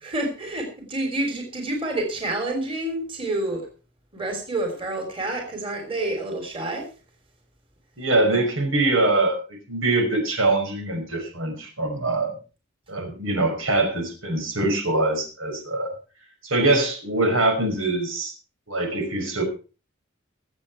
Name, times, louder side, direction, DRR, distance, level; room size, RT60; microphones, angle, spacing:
voice 1, 0.0-3.7 4.1-6.9, right 2 dB, 25° right, 3 dB, 3.3 m, -28 dB
voice 2, 8.0-12.3 12.9-15.9 16.4-18.3 18.7-19.4, right 2 dB, 85° right, 4 dB, 5.5 m, -23 dB
23.0 x 8.0 x 4.4 m, 0.34 s
head